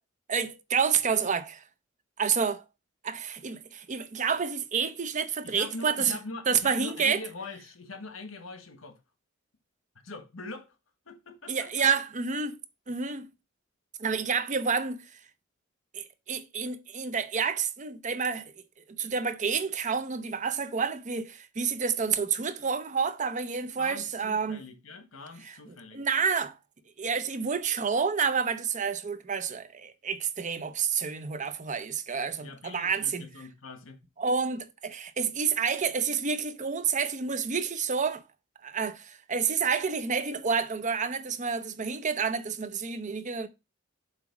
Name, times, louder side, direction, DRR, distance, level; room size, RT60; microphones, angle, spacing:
voice 1, 0.3-1.6 2.2-2.6 3.0-6.2 6.5-7.2 11.5-12.6 12.9-13.3 14.0-15.0 15.9-18.5 18.9-24.6 25.9-26.6 27.0-33.3 34.2-38.2 38.6-43.5, right 6 dB, 40° right, 0.6 m, -29 dB
voice 2, 5.4-9.0 10.0-10.7 11.0-11.9 23.8-26.0 32.4-34.0, left 3 dB, 85° left, 1.4 m, -42 dB
7.5 x 3.0 x 5.9 m
head